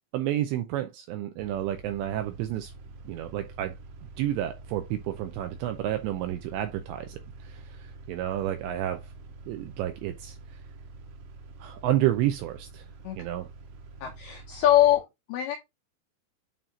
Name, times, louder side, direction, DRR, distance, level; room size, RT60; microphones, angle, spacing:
voice 1, 0.1-2.7 3.1-3.8 4.2-9.1 9.5-10.4 11.6-12.9 13.2-13.5, right 13 dB, 85° right, 2.5 m, -30 dB
sound 1, 1.4-15.0, right 3 dB, 70° right, 3.4 m, -46 dB
voice 2, 14.0-15.0 15.3-15.6, left 13 dB, 85° left, 2.2 m, -22 dB
8.9 x 3.0 x 3.8 m
omnidirectional pair, 5.7 m